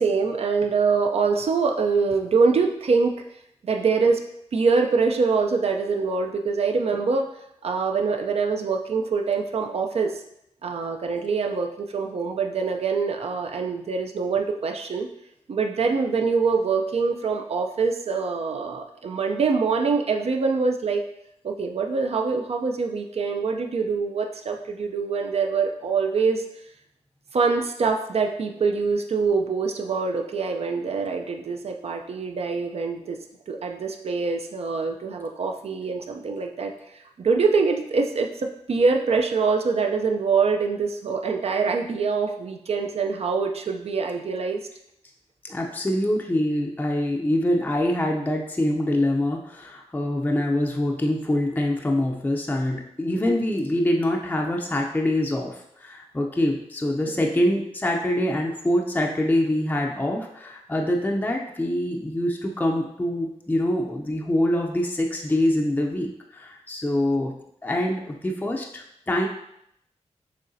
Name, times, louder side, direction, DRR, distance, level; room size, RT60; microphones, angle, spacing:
voice 1, 0.0-3.2 3.6-4.2 4.5-7.3 7.6-10.2 10.6-15.1 15.5-21.0 21.4-26.4 27.3-33.2 33.5-44.7 57.1-57.3, right 4 dB, 60° right, 3 dB, 0.4 m, -24 dB
voice 2, 45.4-67.3 67.6-69.3, left 1 dB, 15° left, 0 dB, 0.4 m, -25 dB
6.5 x 3.1 x 2.6 m, 0.77 s
wide cardioid pair, 120°, 12 cm